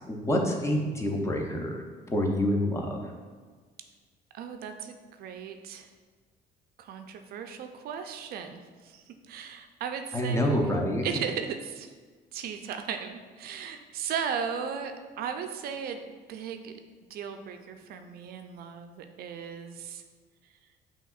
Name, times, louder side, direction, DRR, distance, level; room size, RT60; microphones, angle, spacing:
voice 1, 0.0-3.0 10.1-11.1, equal, 15° left, 1 dB, 0.6 m, -27 dB
voice 2, 4.3-5.9 6.8-10.7 11.0-11.9 12.3-16.0 16.3-16.7 17.1-20.0, right 7 dB, 65° right, 6 dB, 0.4 m, -36 dB
5.7 x 2.8 x 2.4 m, 1.5 s
cardioid pair, 110°, 17 cm